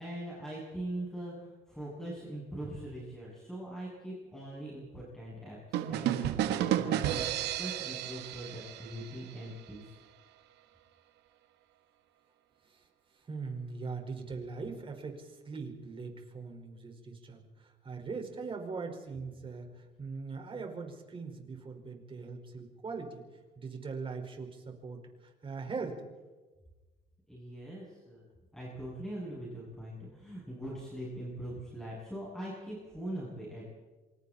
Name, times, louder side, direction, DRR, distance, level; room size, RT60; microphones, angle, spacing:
voice 1, 0.0-10.0 27.3-28.2 28.5-33.7, right 1 dB, 5° left, -6 dB, 7.8 m, -42 dB
sound 1, 5.7-9.5, right 11 dB, 85° right, 1.7 m, -32 dB
voice 2, 12.6-23.2 23.6-26.0, right 4 dB, 30° right, 3 dB, 5.0 m, -41 dB
27.0 x 26.0 x 4.3 m, 1.2 s
cardioid pair, 110°, 17 cm